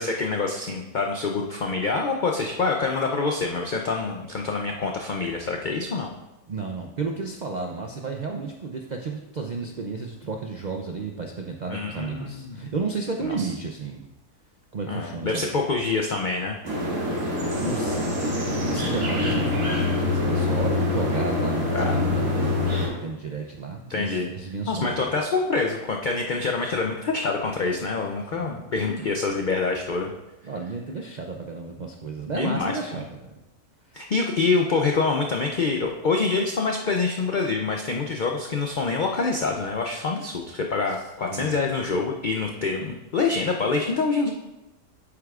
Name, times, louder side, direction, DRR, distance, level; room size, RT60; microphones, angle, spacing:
voice 1, 0.0-6.1 11.7-12.6 13.2-13.5 14.9-16.6 21.7-22.1 23.9-24.3 24.7-30.1 32.3-33.0 33.9-44.3, left 4 dB, 85° left, 1 dB, 0.4 m, -26 dB
voice 2, 6.5-14.1 14.7-15.7 17.1-25.1 28.3-29.2 30.4-33.3 33.9-34.0 40.9-41.0 41.3-41.6, right 4 dB, 80° right, 2 dB, 0.4 m, -33 dB
sound 1, 16.6-22.9, left 2 dB, 60° right, 2.3 m, -25 dB
8.3 x 8.0 x 2.4 m, 1.0 s
omnidirectional pair, 1.6 m